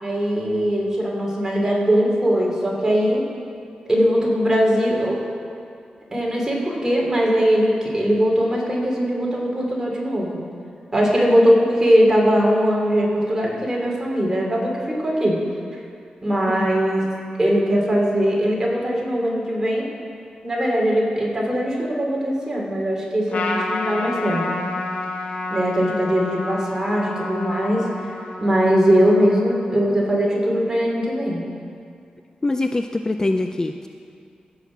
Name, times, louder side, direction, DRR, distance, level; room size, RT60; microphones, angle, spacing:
voice 1, 0.0-3.3 3.9-5.2 6.1-10.4 10.9-15.4 15.7-15.8 16.2-17.0 17.4-19.9 20.4-24.6 25.5-28.1 28.4-31.5, equal, 20° right, -2 dB, 2.8 m, -20 dB
Trumpet, 23.3-30.0, left 2 dB, 75° left, 1.3 m, -30 dB
voice 2, 32.4-33.9, left 2 dB, 25° left, 6 dB, 0.4 m, -24 dB
15.0 x 5.8 x 7.3 m, 2.4 s
wide cardioid pair, 95°, 3 cm